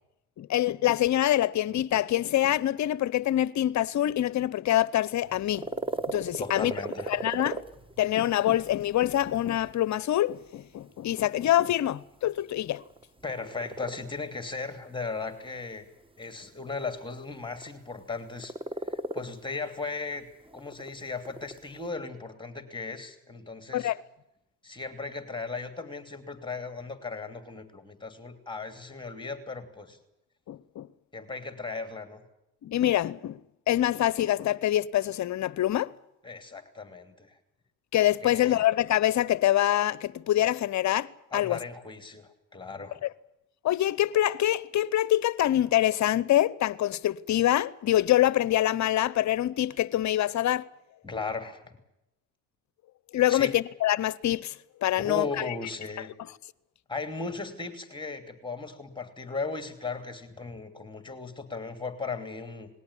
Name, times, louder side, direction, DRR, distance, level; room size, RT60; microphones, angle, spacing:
voice 1, 0.4-5.6 6.1-6.7 7.1-7.6 8.0-12.8 23.7-24.0 30.5-30.9 32.6-33.4 33.7-35.9 37.9-41.1 41.3-41.6 43.6-50.7 53.1-54.5 54.8-55.3, left 13 dB, 45° left, 0.8 m, -25 dB
sound 1, 5.2-21.9, right 2 dB, 15° right, 1.5 m, -40 dB
voice 2, 6.4-7.2 13.2-15.9 16.2-18.6 18.8-20.2 20.5-23.9 24.6-30.0 31.1-32.2 36.2-37.4 38.2-38.6 41.3-43.0 51.0-51.6 53.3-53.5 54.9-56.1 56.9-62.7, left 4 dB, 10° left, 2.9 m, -37 dB
20.0 x 18.0 x 10.0 m
supercardioid pair, 75°, 39 cm